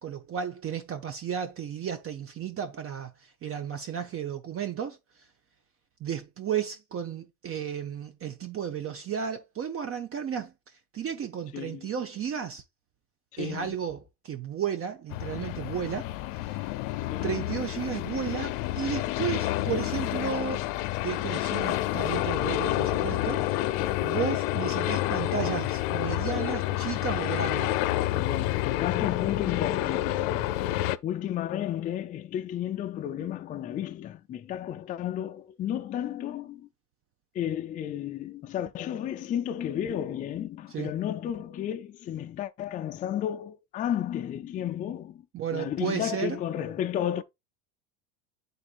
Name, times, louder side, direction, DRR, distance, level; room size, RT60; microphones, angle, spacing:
voice 1, 0.0-5.0 6.0-10.5 10.9-12.6 13.4-16.1 16.5-16.8 17.2-20.7 21.0-27.8 40.7-40.9 45.3-46.4, right 8 dB, 30° right, 0.8 m, -33 dB
voice 2, 11.5-11.9 13.3-13.7 17.1-17.4 28.1-30.7 31.0-36.7 37.3-45.3 45.5-47.2, left 10 dB, 20° left, 0.3 m, -33 dB
sound 1, 15.1-31.0, left 15 dB, 65° left, 0.6 m, -29 dB
9.6 x 4.1 x 2.5 m
supercardioid pair, 115°, 43 cm